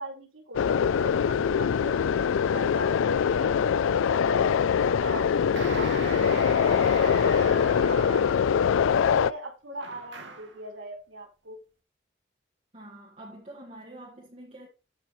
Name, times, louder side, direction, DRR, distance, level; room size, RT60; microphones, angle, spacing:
voice 1, 0.0-4.5 5.0-8.1 8.9-11.6, right 1 dB, 90° right, 4.2 m, -41 dB
sound 1, 0.5-9.3, left 7 dB, 85° left, 0.4 m, -23 dB
sound 2, 5.5-8.6 9.8-10.6, right 4 dB, 65° right, 1.8 m, -39 dB
voice 2, 12.7-14.7, right 1 dB, 35° right, 1.8 m, -46 dB
14.0 x 6.0 x 3.1 m
head